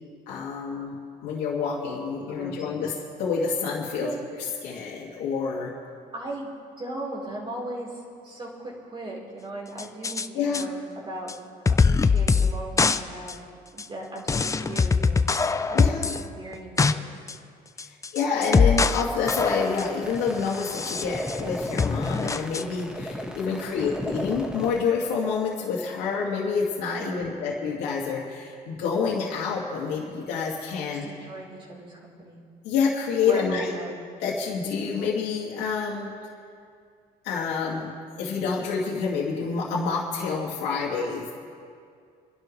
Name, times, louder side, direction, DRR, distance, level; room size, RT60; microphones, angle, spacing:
voice 1, 0.3-0.9 1.2-2.9 3.2-4.1 4.6-5.7 10.3-10.7 15.7-16.1 17.8-31.1 32.6-33.7 34.2-36.1 37.2-37.9 38.2-41.3, left 5 dB, 90° left, -5 dB, 2.4 m, -28 dB
voice 2, 2.3-2.6 3.9-4.2 6.1-6.5 6.8-11.3 11.8-13.4 13.7-15.8 16.4-17.1 23.5-23.8 27.0-27.5 30.9-32.4 33.3-34.0, right 2 dB, 30° right, -3 dB, 4.3 m, -37 dB
sound 1, 9.8-10.3 10.5-10.6 11.3-11.4 11.7-12.5 12.8-13.0 13.3-13.4 13.8-13.9 14.3-16.2 16.5-16.9 17.3-17.4 17.8-19.0 19.3-19.9 20.6-21.4 21.8-22.6, left 4 dB, 20° left, 0.5 m, -22 dB
sound 2, 19.2-24.8, left 1 dB, 5° right, 1.4 m, -36 dB
27.0 x 11.5 x 3.3 m, 2.3 s
cardioid pair, 110°, 17 cm